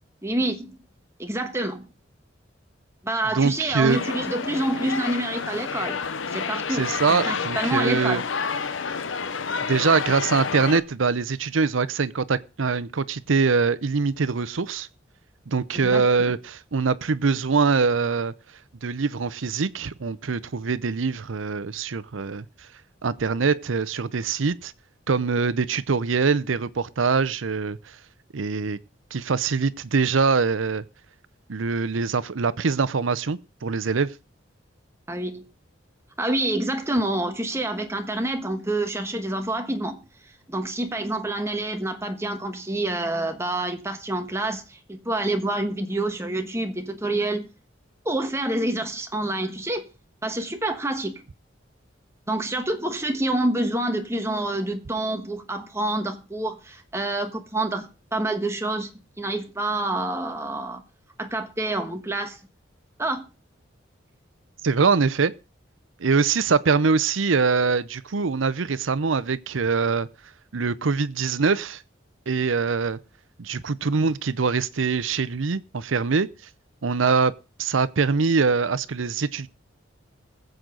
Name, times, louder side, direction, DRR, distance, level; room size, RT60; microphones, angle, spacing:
voice 1, 0.2-0.8 1.2-1.9 3.0-6.0 6.3-6.9 7.3-8.2 15.8-16.3 35.1-35.4 36.2-40.0 40.5-47.5 48.0-49.9 50.2-51.2 52.3-58.9 59.2-60.8 61.2-62.4 63.0-63.2, right 1 dB, 15° right, 1.4 m, -27 dB
voice 2, 3.3-4.0 6.7-8.2 9.7-14.9 15.5-18.3 18.8-22.5 23.0-24.7 25.1-27.8 28.3-28.8 29.1-30.8 31.5-34.1 64.6-65.3 66.0-70.1 70.5-71.8 72.3-73.0 73.4-76.3 76.8-77.3 77.6-79.5, right 4 dB, 90° right, 0.7 m, -23 dB
sound 1, 3.9-10.8, left 5 dB, 80° left, 0.8 m, -29 dB
20.5 x 7.9 x 3.9 m
head